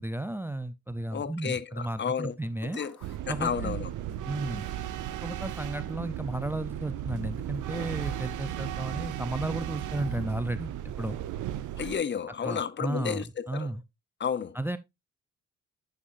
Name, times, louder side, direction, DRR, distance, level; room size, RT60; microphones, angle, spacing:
voice 1, 0.0-2.8 3.3-3.8 4.2-4.7 5.2-11.2 12.4-13.8 14.5-14.8, right 1 dB, 5° right, 0.5 m, -34 dB
voice 2, 1.1-2.3 2.6-3.0 3.3-3.9 11.8-13.7 14.2-14.6, left 7 dB, 40° left, 0.7 m, -32 dB
Zipper (clothing), 2.4-3.2 4.5-5.9 7.3-8.4 9.9-10.3 11.7-12.0, left 4 dB, 60° left, 5.9 m, -54 dB
sound 1, 3.0-12.0, right 12 dB, 90° right, 0.8 m, -35 dB
9.9 x 5.8 x 2.5 m
cardioid pair, 90°, 30 cm